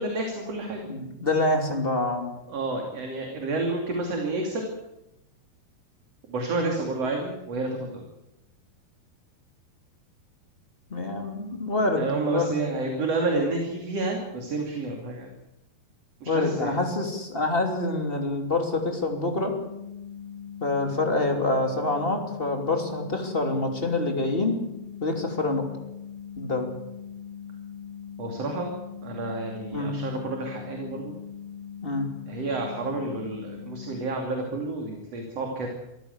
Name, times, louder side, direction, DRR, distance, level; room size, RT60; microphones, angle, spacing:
voice 1, 0.0-0.9 2.5-4.7 6.3-8.0 11.9-15.3 16.2-16.7 28.2-28.7 29.0-31.2 32.3-35.7, right 2 dB, 45° right, 2 dB, 3.5 m, -30 dB
voice 2, 0.9-2.2 10.9-12.6 16.2-19.5 20.6-24.6 25.0-25.7 26.4-26.7 29.7-30.0 31.8-32.1, left 2 dB, 15° left, 3 dB, 2.5 m, -26 dB
sound 1, 19.3-33.9, left 8 dB, 85° right, 8.2 m, -41 dB
24.5 x 15.0 x 8.1 m, 0.89 s
omnidirectional pair, 4.5 m